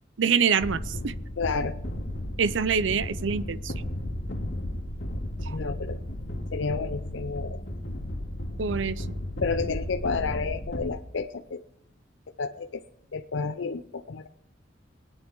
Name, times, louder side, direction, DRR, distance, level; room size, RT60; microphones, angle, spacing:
voice 1, 0.2-1.1 2.4-3.7 5.4-5.6 8.6-9.0, right 6 dB, 80° right, 17 dB, 0.6 m, -25 dB
sound 1, 0.6-10.9, left 1 dB, 70° left, 2.2 m, -34 dB
voice 2, 1.4-1.8 5.5-6.0 6.5-7.6 9.4-11.6 12.4-12.8 13.1-14.3, left 4 dB, 90° left, 8 dB, 0.6 m, -30 dB
21.0 x 9.2 x 4.7 m, 0.75 s
head